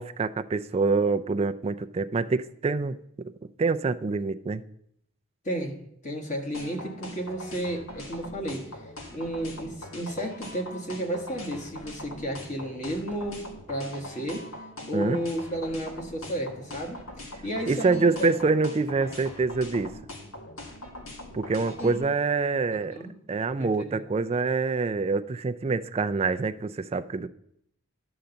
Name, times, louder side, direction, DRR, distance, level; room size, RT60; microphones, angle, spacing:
voice 1, 0.0-3.0 3.6-4.6 14.9-15.2 17.7-19.9 21.3-23.0 23.3-27.3, right 4 dB, 30° right, 9 dB, 0.3 m, -26 dB
voice 2, 5.4-5.8 6.0-14.5 14.8-18.3 21.8-22.1 22.7-23.1 23.6-24.0, right 1 dB, 35° left, 1 dB, 1.4 m, -33 dB
sound 1, 6.5-22.0, left 1 dB, 75° left, 1.9 m, -41 dB
11.5 x 3.9 x 6.9 m, 0.73 s
head